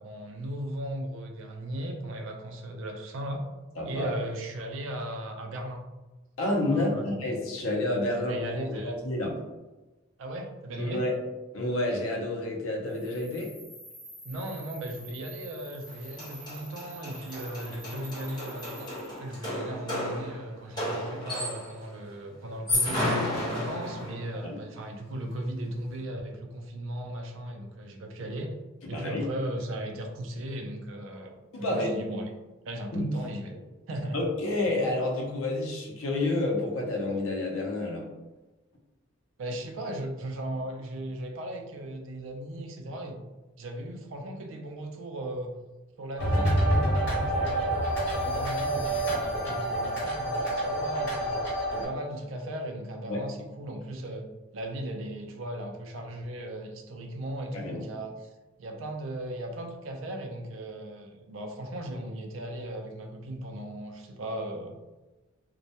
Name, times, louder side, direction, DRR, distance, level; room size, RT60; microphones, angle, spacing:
voice 1, 0.0-3.4 3.8-5.9 6.7-7.1 8.2-9.0 10.2-11.0 14.2-18.9 19.2-28.5 28.9-32.3 32.7-33.5 33.9-34.2 39.4-43.2 43.6-45.6 46.0-51.4 51.7-54.3 54.5-58.3 58.6-64.8, right 1 dB, 65° right, 3 dB, 0.4 m, -37 dB
voice 2, 3.8-4.1 6.4-9.4 10.8-11.1 11.5-13.5 24.4-24.6 28.9-29.2 31.5-31.9 32.9-33.1 34.1-38.1 53.1-53.2 57.5-57.9, left 2 dB, 85° left, 0 dB, 0.6 m, -29 dB
sound 1, 12.9-19.2, right 1 dB, ahead, 0.3 m, -48 dB
sound 2, 15.9-21.8 22.5-24.3, left 1 dB, 20° left, 0.9 m, -32 dB
sound 3, 46.2-51.9, right 1 dB, 55° left, 1.0 m, -27 dB
2.2 x 2.1 x 2.7 m, 1.1 s
head